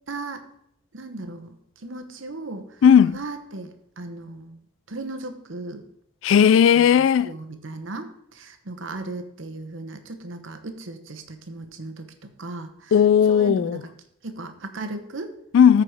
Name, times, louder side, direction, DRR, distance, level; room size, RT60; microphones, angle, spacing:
voice 1, 0.1-0.5 0.9-1.6 1.8-2.7 3.1-4.6 4.9-5.8 6.7-12.9 13.3-13.9 14.2-15.4, right 2 dB, 75° right, 1.1 m, -36 dB
voice 2, 2.8-3.2 6.2-7.3 12.9-13.8 15.5-15.8, left 8 dB, 75° left, 0.3 m, -15 dB
13.5 x 4.8 x 5.0 m
head